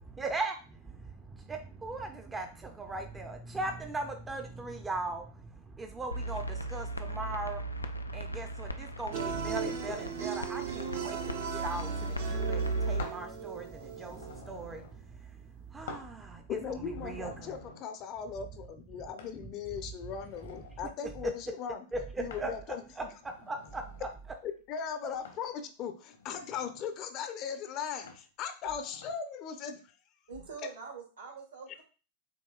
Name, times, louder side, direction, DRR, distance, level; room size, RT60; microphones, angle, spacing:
voice 1, 0.0-17.6 19.4-19.5 21.2-21.3 21.9-22.5 23.0-24.1, right 3 dB, 15° right, 5 dB, 0.6 m, -39 dB
sound 1, 6.1-13.0, right 1 dB, 85° left, 0.3 m, -36 dB
sound 2, 9.1-14.4, right 7 dB, 55° right, 0.8 m, -37 dB
sound 3, 10.7-11.5 13.0-13.3 13.7-15.0 15.9-16.1 16.6-17.9 19.2-19.4 20.0-20.8 22.3-22.6 23.2-24.1 25.2-25.5 26.1-26.9 28.0-28.2 28.7-29.1, left 4 dB, 65° left, 1.0 m, -49 dB
voice 2, 16.5-21.8 22.2-23.1 24.4-29.8, left 7 dB, 40° left, 8 dB, 0.6 m, -38 dB
voice 3, 30.3-31.8, right 5 dB, 75° right, -1 dB, 2.1 m, -44 dB
7.7 x 2.9 x 2.3 m, 0.36 s
figure-of-eight pair, 90°, 0 cm